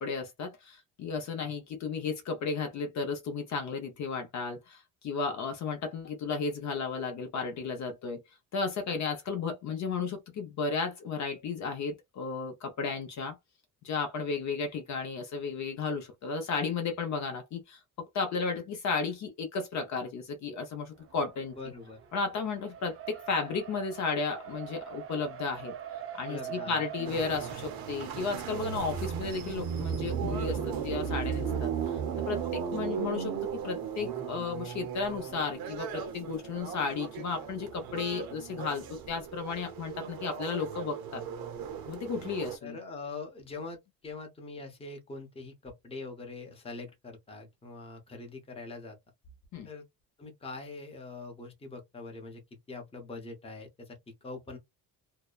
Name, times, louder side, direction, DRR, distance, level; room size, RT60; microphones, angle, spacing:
voice 1, 0.0-8.2 8.5-13.4 13.8-21.5 22.1-25.7 26.2-32.0 32.3-41.2 41.9-42.8 49.5-49.7, left 4 dB, 50° left, 0.6 m, -34 dB
Race car auto racing, 21.0-32.0, right 10 dB, 40° right, 0.5 m, -46 dB
voice 2, 21.6-22.0 26.3-27.1 42.6-49.0 49.6-49.8 50.2-54.6, left 3 dB, 15° left, 0.8 m, -43 dB
sound 1, 27.0-42.6, right 7 dB, 70° right, 0.8 m, -36 dB
2.7 x 2.1 x 2.2 m
cardioid pair, 150°, 37 cm